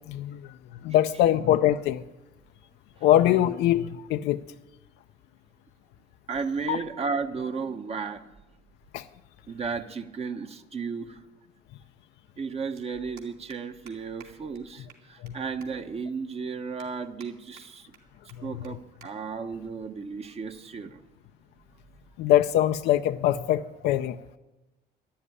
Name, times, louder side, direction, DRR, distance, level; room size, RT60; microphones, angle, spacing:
voice 1, 0.1-2.0 3.0-4.4 6.7-6.8 8.9-9.1 15.2-15.4 18.4-18.5 22.2-24.2, left 12 dB, 80° left, 7 dB, 0.5 m, -23 dB
voice 2, 6.3-8.3 9.5-11.2 12.4-17.9 18.4-21.0, right 5 dB, 35° right, 7 dB, 1.1 m, -34 dB
sound 1, 12.8-12.9 13.2-13.6 13.9-14.0 14.2-14.3 14.5-14.6 14.9-15.3 15.6-15.7 16.2-16.3 16.8-17.3 17.6-18.0 18.3-18.4 18.6-18.7 19.0-19.1 19.4-19.6 20.4-20.7, right 6 dB, 60° right, 3.0 m, -52 dB
12.5 x 11.0 x 9.7 m, 1.1 s
cardioid pair, 110°, 17 cm